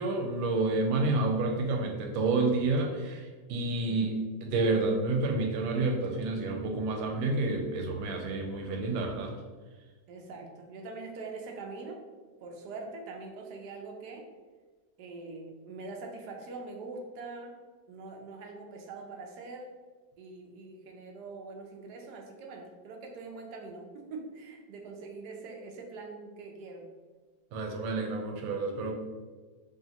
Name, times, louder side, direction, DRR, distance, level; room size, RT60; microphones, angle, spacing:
voice 1, 0.0-3.2 3.5-4.1 4.4-9.3 27.5-28.9, right 3 dB, 90° right, 3 dB, 1.4 m, -29 dB
voice 2, 3.8-4.2 10.1-12.0 12.4-14.3 15.0-17.6 17.9-19.7 20.2-26.9, right 3 dB, 70° right, 1 dB, 1.1 m, -43 dB
4.8 x 2.8 x 2.9 m, 1.4 s
omnidirectional pair, 2.1 m